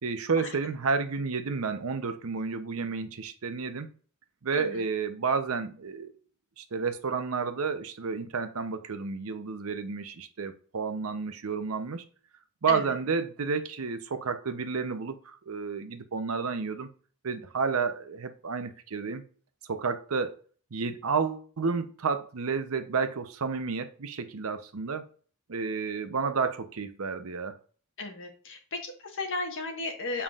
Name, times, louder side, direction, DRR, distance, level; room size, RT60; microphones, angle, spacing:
voice 1, 0.0-3.9 4.4-6.1 6.6-12.0 12.6-16.9 17.2-19.2 19.7-20.3 20.7-25.0 25.5-27.6, right 5 dB, 75° right, 0.7 m, -31 dB
voice 2, 4.5-4.8 12.7-13.0 28.0-30.2, left 3 dB, 60° left, 1.4 m, -35 dB
7.1 x 5.6 x 2.4 m
head